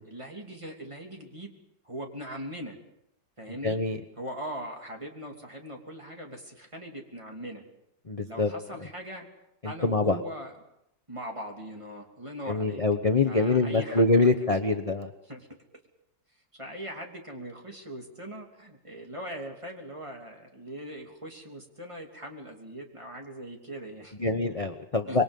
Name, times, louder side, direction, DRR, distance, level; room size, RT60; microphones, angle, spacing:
voice 1, 0.0-1.5 1.8-2.8 3.4-3.8 4.2-7.6 8.2-9.3 9.6-10.5 11.1-12.8 13.3-14.8 15.2-15.5 16.3-24.2 25.1-25.2, equal, 15° right, 1 dB, 2.9 m, -40 dB
voice 2, 3.6-4.0 8.1-8.5 9.8-10.2 12.5-15.1 24.2-25.2, left 3 dB, 40° left, 7 dB, 0.5 m, -24 dB
26.0 x 22.5 x 5.4 m, 0.82 s
omnidirectional pair, 2.2 m